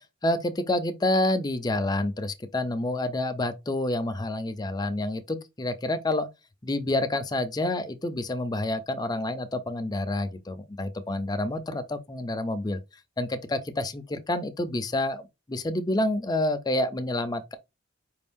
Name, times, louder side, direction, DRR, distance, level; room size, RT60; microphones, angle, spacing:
voice 1, 0.2-6.3 6.6-12.8 13.2-15.2 15.5-17.5, left 1 dB, 20° left, 0.5 m, -28 dB
4.8 x 2.6 x 3.5 m
head